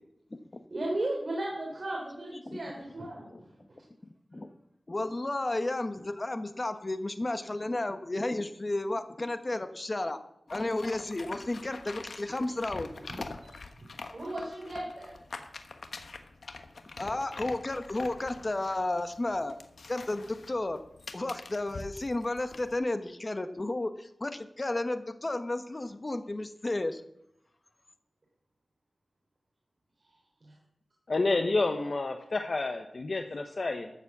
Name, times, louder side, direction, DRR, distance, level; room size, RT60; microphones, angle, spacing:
voice 1, 0.7-3.3 13.4-13.6 14.1-15.1 30.4-30.5, right 1 dB, 45° right, -2 dB, 3.6 m, -35 dB
voice 2, 4.9-10.2 10.5-13.4 17.0-19.6 19.9-20.8 21.1-27.0, left 2 dB, 30° left, 9 dB, 1.1 m, -32 dB
sound 1, 10.5-22.8, left 3 dB, 75° left, 1.2 m, -45 dB
voice 3, 31.1-33.9, left 3 dB, 55° left, 6 dB, 1.0 m, -29 dB
13.5 x 7.3 x 7.2 m, 0.77 s
wide cardioid pair, 105°, 0 cm